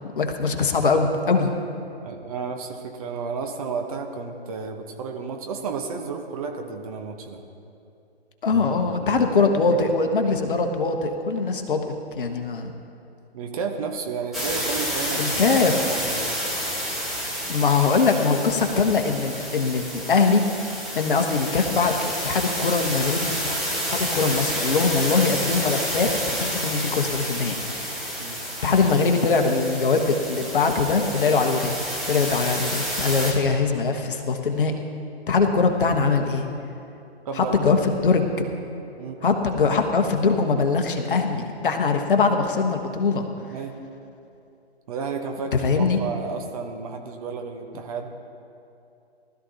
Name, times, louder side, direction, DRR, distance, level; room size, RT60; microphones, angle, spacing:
voice 1, 0.2-1.5 8.4-12.7 15.2-15.9 17.5-23.6 23.9-27.5 28.6-31.7 32.1-34.8 35.3-36.4 37.4-38.5 39.2-43.3 45.6-46.0, left 4 dB, 55° left, 5 dB, 1.3 m, -22 dB
voice 2, 2.0-7.4 8.5-9.8 13.3-16.4 28.2-28.4 37.2-37.9 39.0-39.3 43.5-43.8 44.9-48.1, right 5 dB, 35° right, 3 dB, 1.0 m, -32 dB
sound 1, 14.3-33.3, equal, ahead, 1.4 m, -29 dB
19.0 x 13.0 x 2.9 m, 2.7 s
figure-of-eight pair, 130°, 32 cm